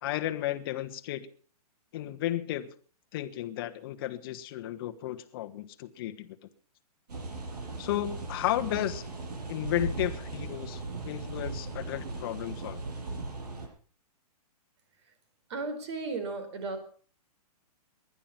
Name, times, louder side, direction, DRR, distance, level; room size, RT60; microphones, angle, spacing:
voice 1, 0.0-1.3 1.9-2.7 3.1-6.4 7.8-9.0 9.5-12.8, left 13 dB, 35° left, 7 dB, 1.3 m, -33 dB
sound 1, 7.1-13.7, right 3 dB, 85° right, 6.7 m, -38 dB
voice 2, 15.5-16.8, right 3 dB, 45° right, 9 dB, 4.3 m, -34 dB
19.5 x 11.5 x 5.8 m, 0.43 s
hypercardioid pair, 160°, 20 cm